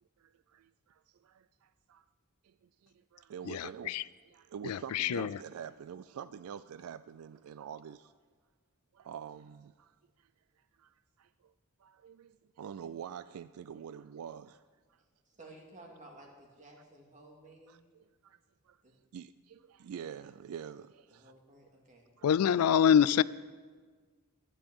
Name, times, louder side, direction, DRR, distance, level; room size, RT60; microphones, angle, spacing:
voice 1, 0.2-2.1 2.4-2.5 2.8-8.1 8.9-9.9 10.8-11.5 11.8-14.6 17.7-18.4 18.7-18.8 19.1-21.3 22.2-22.3, right 8 dB, 70° right, 0.3 m, -46 dB
voice 2, 3.4-4.0 4.6-5.4 22.2-23.2, left 8 dB, 85° left, 0.3 m, -26 dB
voice 3, 15.3-17.8 18.8-18.9 21.1-22.0, right 2 dB, 35° right, 2.4 m, -54 dB
12.0 x 10.0 x 7.1 m
head